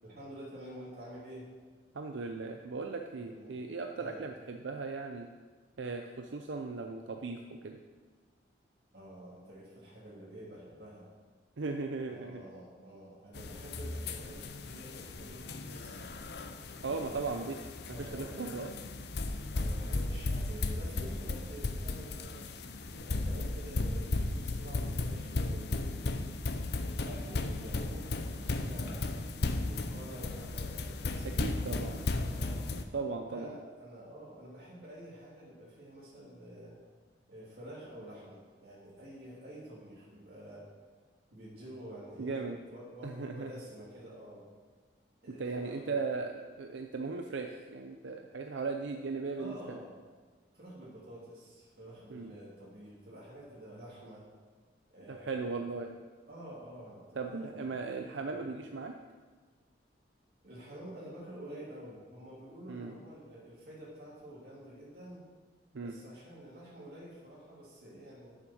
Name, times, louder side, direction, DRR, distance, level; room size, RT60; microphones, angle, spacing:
voice 1, 0.0-1.5 3.1-3.6 4.0-4.2 8.9-11.0 12.1-16.0 16.9-17.5 17.9-18.6 19.5-22.5 22.9-26.3 26.8-29.1 29.5-32.7 33.3-36.8 37.3-40.7 41.3-44.4 45.2-46.0 49.4-49.9 50.5-54.2 54.9-55.6 56.3-58.5 60.4-65.2 65.8-68.3, right 1 dB, 55° right, -7 dB, 3.0 m, -49 dB
voice 2, 1.9-5.3 5.8-7.8 11.6-12.4 16.8-17.6 18.0-18.7 31.4-32.0 32.9-33.5 42.2-42.6 43.0-43.5 45.4-46.3 46.6-49.8 52.1-52.3 55.1-55.9 57.2-59.0 62.7-62.9 65.7-65.9, right 4 dB, 80° right, 4 dB, 0.6 m, -37 dB
sound 1, 13.3-32.8, left 2 dB, 60° left, 0.6 m, -35 dB
9.1 x 7.4 x 6.3 m, 1.4 s
head